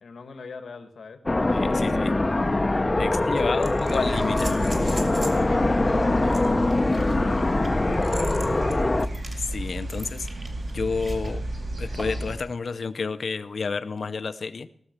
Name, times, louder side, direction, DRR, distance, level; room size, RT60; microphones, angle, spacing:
voice 1, 0.0-2.0 2.7-3.7 4.9-8.6, left 4 dB, 80° left, 7 dB, 1.3 m, -40 dB
sound 1, 1.3-9.1, left 2 dB, 25° left, 0.6 m, -23 dB
voice 2, 1.5-2.1 3.0-5.0 8.9-9.1 9.4-10.4 10.7-11.4 11.8-14.7, left 4 dB, 60° left, 13 dB, 0.7 m, -30 dB
sound 2, 2.3-2.4 3.4-5.5 6.3-11.3 12.0-12.3 14.0-14.1, right 2 dB, 35° right, 2.4 m, -41 dB
sound 3, 3.8-12.3, right 1 dB, 80° right, 4.4 m, -33 dB
17.5 x 7.1 x 6.5 m, 0.69 s
wide cardioid pair, 120°, 0 cm